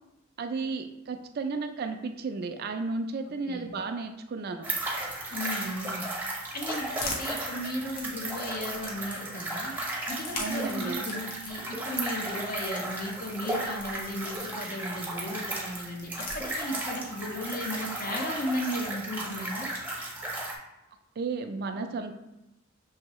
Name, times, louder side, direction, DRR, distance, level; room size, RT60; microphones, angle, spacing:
voice 1, 0.4-4.7 10.4-11.0 21.2-22.1, right 4 dB, 50° right, 6 dB, 0.4 m, -33 dB
sound 1, 4.6-20.5, right 1 dB, 10° right, 0.7 m, -35 dB
voice 2, 5.3-6.1 6.5-9.8 10.1-19.7, left 1 dB, 45° left, 2 dB, 0.6 m, -35 dB
sound 2, 6.2-9.2 10.0-14.6 15.6-17.0, left 2 dB, 85° left, 0.8 m, -43 dB
6.4 x 2.7 x 3.0 m, 0.92 s
head